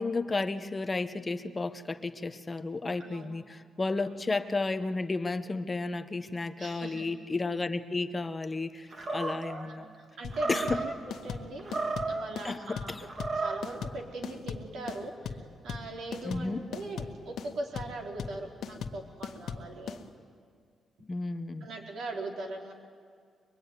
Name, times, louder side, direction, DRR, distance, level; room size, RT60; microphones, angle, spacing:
voice 1, 0.0-9.9 10.5-10.8 12.4-13.1 16.2-16.6 21.1-21.7, left 3 dB, 20° left, 9 dB, 0.8 m, -32 dB
voice 2, 3.0-3.3 4.0-4.2 6.6-7.0 9.6-12.9 13.4-20.0 21.6-22.7, right 2 dB, 75° right, 0 dB, 4.3 m, -40 dB
Animal, 8.9-9.6 10.3-11.0 11.6-12.3 13.0-13.7, right 3 dB, 35° right, 2.1 m, -33 dB
sound 1, 10.2-20.0, left 6 dB, 75° left, 1.4 m, -38 dB
23.0 x 22.5 x 9.6 m, 2.1 s
cardioid pair, 135°, 0 cm